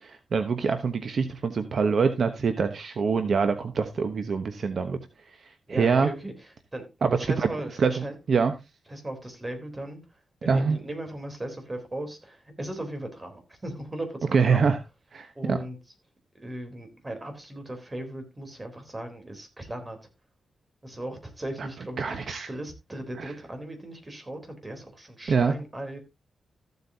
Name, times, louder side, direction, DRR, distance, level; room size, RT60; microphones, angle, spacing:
voice 1, 0.0-5.0 5.7-6.1 7.0-7.5 7.8-7.9 8.3-8.5 10.5-10.8 14.3-14.8 15.1-15.6 21.6-21.7 22.0-22.5 23.2-23.3 25.3-25.5, right 5 dB, 60° right, 1.1 m, -24 dB
voice 2, 5.7-6.9 7.2-8.2 8.9-10.0 10.4-14.7 15.4-15.8 16.3-20.0 20.8-22.2 22.5-26.0, right 1 dB, 20° right, 3.7 m, -37 dB
14.5 x 8.1 x 2.8 m
cardioid pair, 90°, 0 cm